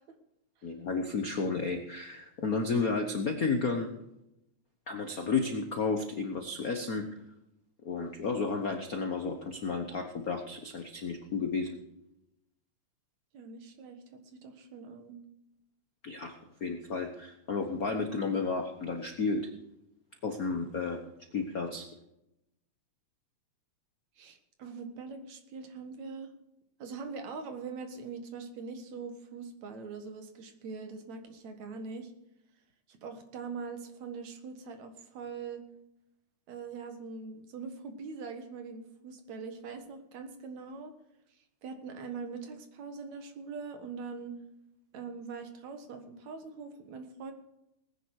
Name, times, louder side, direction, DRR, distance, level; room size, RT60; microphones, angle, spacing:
voice 1, 0.6-3.9 4.9-7.1 7.8-11.8 16.0-16.3 16.6-19.5 20.2-21.0 21.3-21.9, left 4 dB, 65° left, 5 dB, 0.9 m, -32 dB
voice 2, 13.3-15.2 24.2-26.3 26.8-32.1 32.9-35.6 36.5-40.9 41.6-44.4 44.9-47.3, right 5 dB, 70° right, 7 dB, 2.8 m, -42 dB
19.0 x 10.0 x 4.8 m, 0.86 s
omnidirectional pair, 3.3 m